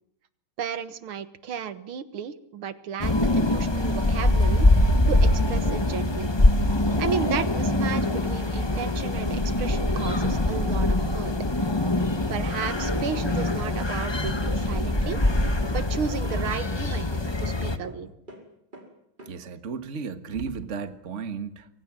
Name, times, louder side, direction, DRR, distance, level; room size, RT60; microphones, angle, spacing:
voice 1, 0.6-6.3 7.0-11.3 12.3-18.1, right 7 dB, 75° right, 12 dB, 2.2 m, -34 dB
sound 1, 3.0-17.8, left 1 dB, 15° left, 1.1 m, -23 dB
sound 2, 8.0-18.4 18.7-18.9 19.2-19.4, right 1 dB, 20° right, 5.3 m, -45 dB
voice 2, 19.3-21.7, right 6 dB, 40° right, 10 dB, 1.7 m, -34 dB
28.5 x 24.0 x 7.6 m, 0.71 s
omnidirectional pair, 2.3 m